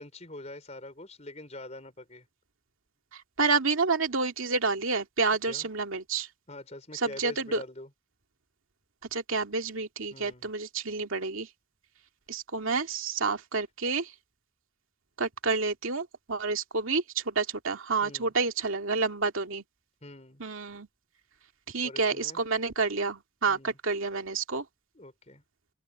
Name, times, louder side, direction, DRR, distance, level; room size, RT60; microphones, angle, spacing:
voice 1, 0.0-2.3 5.4-5.7 6.5-7.9 10.1-10.5 18.0-18.3 20.0-20.4 21.8-22.4 23.5-23.8 24.9-25.4, left 1 dB, 30° left, 4.7 m, -44 dB
voice 2, 3.4-6.3 7.0-7.6 9.1-11.5 12.3-14.1 15.2-19.6 20.4-20.9 21.7-24.6, right 4 dB, 75° right, 2.3 m, -29 dB
open air
head